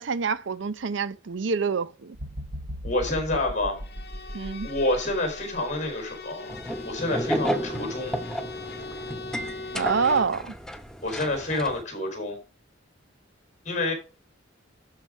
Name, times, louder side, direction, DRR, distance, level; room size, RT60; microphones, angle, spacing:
voice 1, 0.0-2.2 4.3-4.7 9.7-10.5, right 5 dB, 65° right, 0.6 m, -26 dB
sound 1, 2.1-6.2 6.7-6.9, equal, 85° right, 1.5 m, -38 dB
voice 2, 2.8-3.8 4.6-6.5 6.8-8.2 11.0-12.4 13.6-13.9, left 2 dB, 40° left, 4.3 m, -28 dB
Bowed string instrument, 3.7-10.4, left 3 dB, 60° left, 1.5 m, -40 dB
sound 2, 6.5-11.8, right 1 dB, 5° left, 0.8 m, -32 dB
12.0 x 5.0 x 5.2 m
head